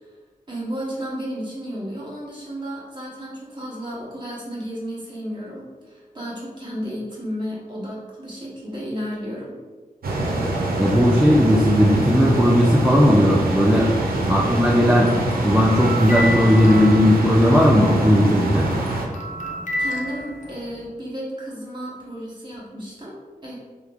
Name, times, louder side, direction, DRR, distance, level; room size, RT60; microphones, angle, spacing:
voice 1, 0.5-9.6 19.8-23.1 23.4-23.6, equal, 30° right, -6 dB, 1.2 m, -33 dB
sound 1, 10.0-19.1, right 2 dB, 90° right, 0.4 m, -25 dB
voice 2, 10.8-13.9 14.3-15.2 15.4-18.7, equal, 5° right, -5 dB, 0.4 m, -16 dB
sound 2, 14.0-18.0 18.4-20.9, equal, 55° left, 0.5 m, -31 dB
3.1 x 2.1 x 2.4 m, 1.4 s
cardioid pair, 40°, 15 cm